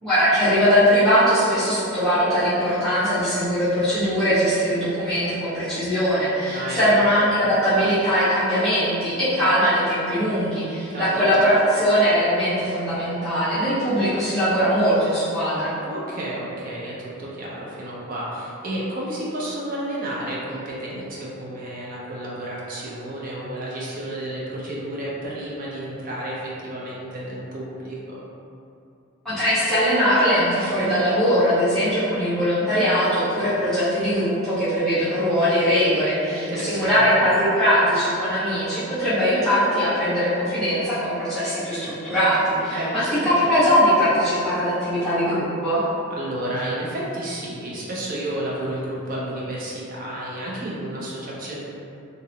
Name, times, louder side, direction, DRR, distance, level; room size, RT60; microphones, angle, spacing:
voice 1, 0.0-15.7 29.2-45.8, equal, ahead, -17 dB, 1.0 m, -21 dB
voice 2, 6.5-7.2 10.9-11.3 15.8-28.2 36.3-37.3 42.7-43.6 46.2-51.6, right 1 dB, 45° right, -6 dB, 0.6 m, -31 dB
2.9 x 2.6 x 2.8 m, 2.6 s
head